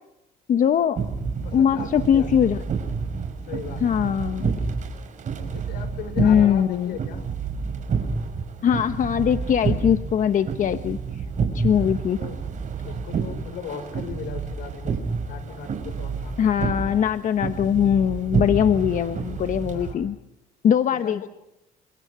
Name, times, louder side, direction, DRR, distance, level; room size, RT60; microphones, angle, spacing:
voice 1, 0.5-1.0 1.5-2.6 3.8-4.5 6.2-7.0 8.6-11.0 11.5-12.2 16.4-20.2 20.6-21.3, left 8 dB, 50° left, 10 dB, 1.1 m, -21 dB
voice 2, 1.0-2.6 3.4-4.1 5.4-7.2 11.7-12.4 12.8-15.0 15.2-16.4 18.9-19.4 19.7-20.1 20.9-21.3, left 7 dB, 75° left, 10 dB, 5.0 m, -38 dB
sound 1, 1.0-19.9, right 5 dB, 45° right, 5.8 m, -29 dB
29.5 x 27.0 x 5.0 m, 0.86 s
cardioid pair, 110°, 17 cm